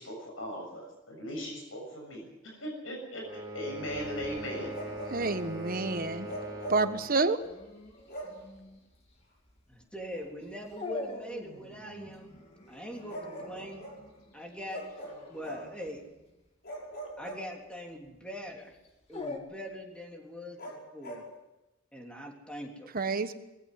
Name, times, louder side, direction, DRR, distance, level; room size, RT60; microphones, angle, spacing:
voice 1, 0.0-4.8, equal, 80° left, 2 dB, 6.9 m, -39 dB
sound 1, 3.2-7.1, right 1 dB, 20° right, 6.8 m, -41 dB
Dog, 3.9-19.4, left 2 dB, 30° left, 3.0 m, -47 dB
Bark, 4.7-5.5 6.2-6.9 8.1-8.5 10.1-10.3 13.1-14.0 14.7-15.8 16.6-17.9 20.6-21.3, equal, 50° left, 5.5 m, -42 dB
voice 2, 5.1-6.3 6.7-7.4 22.9-23.3, right 3 dB, 45° right, 10 dB, 1.3 m, -28 dB
voice 3, 9.7-12.3 12.7-13.8 14.3-14.8 15.3-16.0 17.2-18.8 19.1-21.2 21.9-22.9, equal, 5° left, 1 dB, 3.5 m, -42 dB
21.0 x 15.5 x 9.4 m, 0.98 s
head